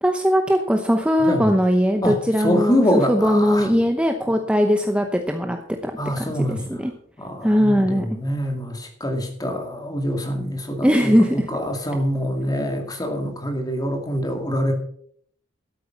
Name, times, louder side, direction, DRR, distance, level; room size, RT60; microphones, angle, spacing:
voice 1, 0.0-5.9 6.2-6.9 7.4-8.1 10.8-11.5, equal, 5° right, 4 dB, 0.8 m, -20 dB
voice 2, 1.2-1.5 2.0-3.7 6.0-6.8 7.2-14.7, equal, 20° left, 3 dB, 2.2 m, -25 dB
12.5 x 8.6 x 5.8 m, 0.63 s
head